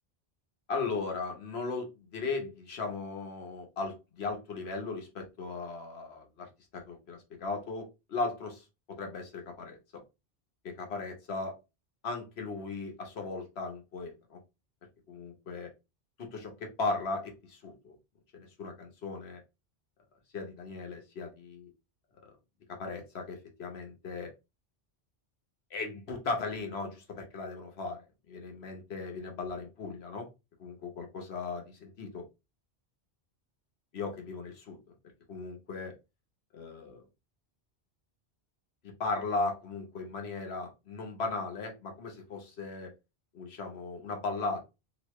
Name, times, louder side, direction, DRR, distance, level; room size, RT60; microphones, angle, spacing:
voice 1, 0.7-9.8 10.6-11.6 12.0-14.4 15.1-15.7 16.2-17.9 18.3-19.4 20.3-21.7 22.7-24.3 25.7-30.3 30.6-32.2 33.9-34.8 35.3-35.9 36.5-37.0 38.8-42.9 43.3-44.6, left 3 dB, 85° left, 2 dB, 1.2 m, -37 dB
3.0 x 2.8 x 3.0 m, 0.26 s
omnidirectional pair, 1.0 m